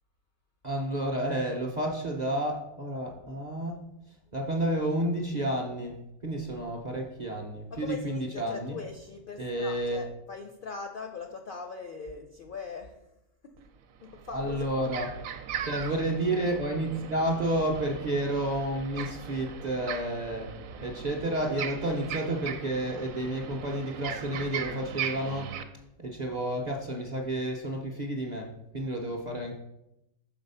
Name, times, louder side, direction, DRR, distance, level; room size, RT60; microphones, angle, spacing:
voice 1, 0.6-3.8 4.3-8.8 9.4-10.0 14.3-15.1 15.6-25.5 26.0-29.6, right 1 dB, 45° right, 0 dB, 0.6 m, -31 dB
voice 2, 7.7-12.9 13.4-13.5 14.0-14.9 15.6-15.7, left 5 dB, 65° left, 4 dB, 0.5 m, -40 dB
sound 1, 13.6-13.7 14.0-25.6, right 8 dB, 70° right, 0.9 m, -39 dB
6.0 x 4.0 x 5.4 m, 0.87 s
omnidirectional pair, 1.5 m